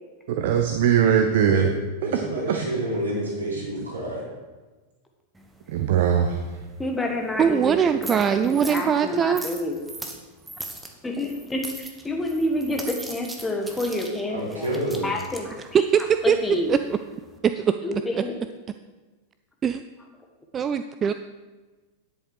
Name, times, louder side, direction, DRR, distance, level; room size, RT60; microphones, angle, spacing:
voice 1, 0.3-1.7 2.1-2.2 2.5-2.6 5.7-6.4, right 8 dB, 55° right, 5 dB, 0.8 m, -20 dB
voice 2, 2.0-4.2 14.3-15.1, right 1 dB, 75° right, -5 dB, 3.8 m, -28 dB
sound 1, 5.3-17.4, right 2 dB, 10° right, 1.2 m, -41 dB
voice 3, 6.8-9.8 11.0-14.7 15.0-15.6 16.2-16.8 17.8-18.3, left 1 dB, 10° left, 2 dB, 1.4 m, -28 dB
voice 4, 7.4-9.5 15.7-16.4 16.7-16.8 17.4-17.7 18.1-18.2 19.6-19.8 20.5-21.1, right 8 dB, 25° right, 10 dB, 0.3 m, -21 dB
10.0 x 8.1 x 4.8 m, 1.3 s
figure-of-eight pair, 90°, 0 cm